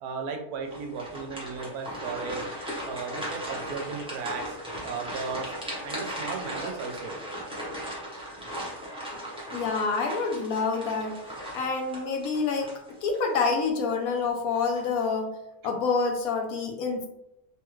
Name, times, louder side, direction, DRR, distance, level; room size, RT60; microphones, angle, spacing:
voice 1, 0.0-2.5 2.8-4.6 4.8-5.4 5.8-7.1 9.0-9.1, right 5 dB, 85° right, 4 dB, 1.1 m, -35 dB
sound 1, 0.7-13.3 13.8-13.9 14.5-15.0, equal, 5° right, 0.7 m, -37 dB
voice 2, 9.5-11.2 11.5-12.7 13.0-15.4 15.6-17.1, left 4 dB, 75° left, 2 dB, 1.0 m, -27 dB
3.1 x 2.3 x 3.0 m, 0.85 s
omnidirectional pair, 1.6 m